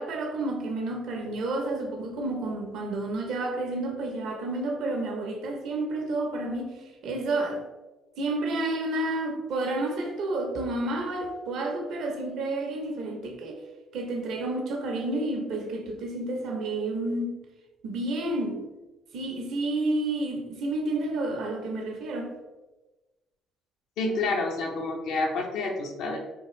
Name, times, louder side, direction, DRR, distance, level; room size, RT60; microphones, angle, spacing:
voice 1, 0.0-7.6 8.2-13.6 13.9-17.4 17.8-18.6 19.1-22.3, right 2 dB, 70° right, 0.8 m, -30 dB
voice 2, 24.0-26.2, left 3 dB, 80° left, 0.8 m, -28 dB
3.7 x 2.5 x 3.1 m
supercardioid pair, 75°, 0 cm